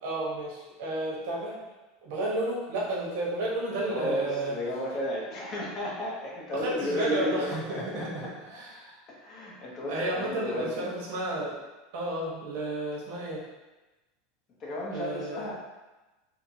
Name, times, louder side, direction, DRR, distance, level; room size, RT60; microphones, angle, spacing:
voice 1, 0.0-1.6 2.0-4.6 6.5-9.0 9.9-11.6 11.9-13.4 14.9-15.4, right 1 dB, 65° right, -4 dB, 0.9 m, -32 dB
voice 2, 3.8-8.6 9.1-10.9 14.6-15.6, left 1 dB, 35° left, -4 dB, 0.8 m, -34 dB
2.8 x 2.6 x 2.6 m, 1.1 s
supercardioid pair, 140°, 0 cm